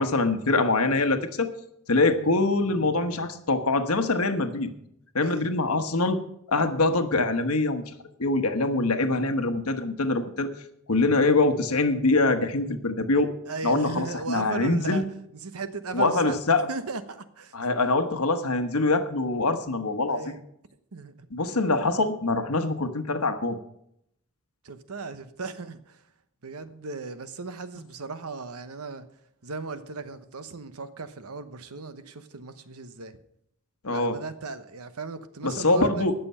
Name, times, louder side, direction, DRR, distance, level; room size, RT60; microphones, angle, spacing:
voice 1, 0.0-1.5 1.9-4.7 5.1-6.2 6.5-7.9 8.2-10.5 10.9-13.3 13.6-15.0 15.9-16.7 17.5-20.3 21.3-23.6 33.8-34.2 35.4-36.1, left 3 dB, 75° left, 1.2 m, -24 dB
voice 2, 2.6-3.0 5.2-5.5 13.5-15.0 15.3-16.4 16.7-17.5 20.1-20.4 20.9-21.3 24.6-26.0 26.4-29.0 29.4-33.2 33.9-36.1, right 4 dB, 80° right, 1.0 m, -37 dB
17.5 x 6.9 x 5.6 m
head